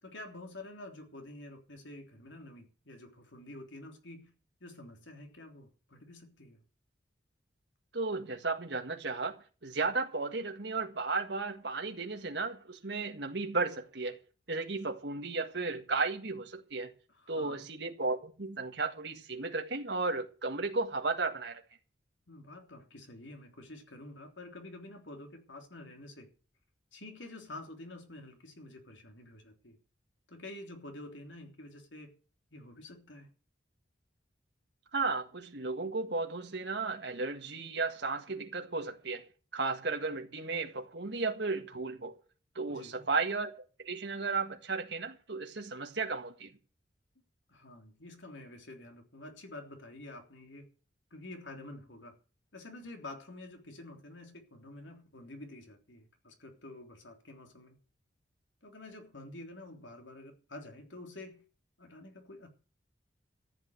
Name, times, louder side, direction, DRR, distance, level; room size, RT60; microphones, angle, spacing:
voice 1, 0.0-4.3 4.6-6.6 17.1-17.6 22.3-26.3 26.9-29.8 30.3-32.1 32.5-33.3 42.7-43.1 47.5-50.7 51.1-52.2 52.5-57.8 58.6-61.4 61.8-62.5, left 2 dB, 80° left, 3.4 m, -48 dB
voice 2, 7.9-14.2 14.5-16.9 17.3-21.6 34.9-39.2 39.5-42.2 42.6-43.5 43.8-46.5, right 3 dB, 65° right, 1.8 m, -34 dB
14.0 x 8.5 x 8.0 m
head